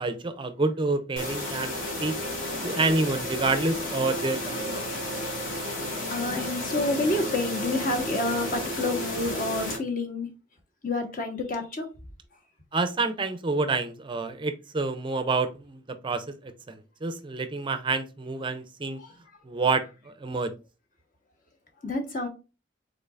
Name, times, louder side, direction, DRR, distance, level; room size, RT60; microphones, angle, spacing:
voice 1, 0.0-1.7 2.0-4.9 12.7-19.0 19.4-20.5, right 3 dB, 25° right, 0.5 m, -28 dB
sound 1, 1.2-9.8, left 1 dB, 85° left, 2.4 m, -32 dB
voice 2, 6.1-10.3 10.8-11.9 19.0-19.1 21.8-22.3, left 2 dB, 45° left, 1.2 m, -29 dB
5.5 x 3.9 x 2.4 m
head